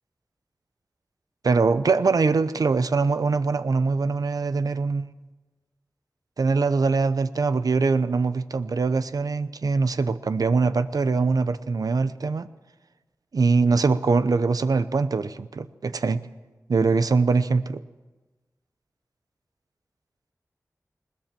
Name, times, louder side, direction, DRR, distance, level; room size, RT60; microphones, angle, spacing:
voice 1, 1.4-5.1 6.4-12.5 13.3-16.2 16.7-17.8, right 4 dB, 80° right, 13 dB, 0.7 m, -23 dB
20.5 x 19.0 x 7.5 m, 1.2 s
wide cardioid pair, 50°, 6 cm